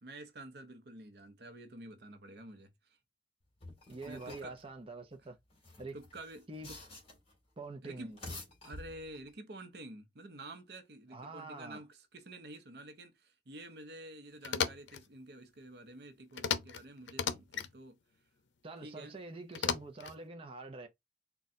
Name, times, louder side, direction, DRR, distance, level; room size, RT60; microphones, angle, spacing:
voice 1, 0.0-3.0 4.0-4.6 5.9-6.8 7.8-8.2 8.6-18.0 18.8-19.2, right 1 dB, 65° right, 0.8 m, -49 dB
sound 1, 3.6-4.6 5.5-7.3 8.0-9.3, left 2 dB, 35° left, 1.9 m, -49 dB
voice 2, 3.9-5.4 5.8-6.0 6.5-6.7 7.6-8.2 11.1-11.8 18.6-20.9, right 3 dB, 30° right, 0.6 m, -45 dB
sound 2, 14.4-15.0 16.4-16.8 17.1-17.7 19.5-20.2, left 7 dB, 90° left, 0.5 m, -34 dB
4.2 x 2.3 x 3.5 m
head